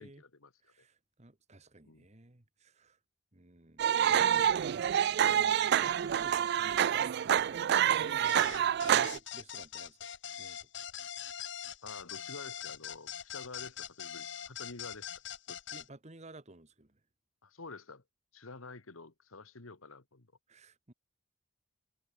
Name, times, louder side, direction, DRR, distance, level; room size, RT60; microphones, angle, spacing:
voice 1, 0.0-0.7 1.8-2.1 11.8-15.1 15.5-15.6 17.4-18.0 18.3-20.3, left 3 dB, 90° left, 1.8 m, -49 dB
voice 2, 0.6-3.0 3.3-4.3 5.2-7.6 7.9-10.0 10.4-10.7 15.7-17.0 20.5-20.9, right 2 dB, 35° right, 1.5 m, -53 dB
sound 1, 3.8-9.2, right 9 dB, 55° right, 0.3 m, -27 dB
sound 2, 8.3-15.9, left 9 dB, 60° left, 1.2 m, -43 dB
head